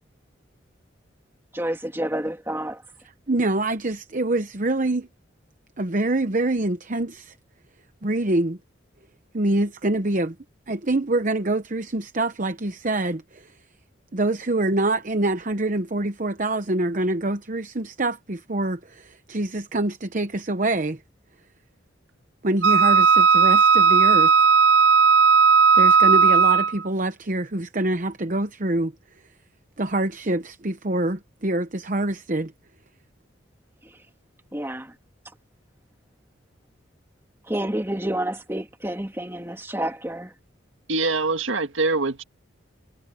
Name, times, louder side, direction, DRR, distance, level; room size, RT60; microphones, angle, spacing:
voice 1, 1.5-2.8 33.8-34.0 34.5-34.9 37.5-40.3, right 1 dB, 10° right, 2.3 m, -29 dB
voice 2, 3.3-5.1 5.8-7.3 8.0-8.6 9.3-10.3 10.7-13.5 14.1-21.0 22.4-24.3 25.7-28.9 29.8-32.5, right 2 dB, 40° right, 0.9 m, -25 dB
Wind instrument woodwind instrument, 22.6-26.8, right 5 dB, 60° right, 0.5 m, -16 dB
voice 3, 40.9-42.2, right 3 dB, 90° right, 1.8 m, -24 dB
head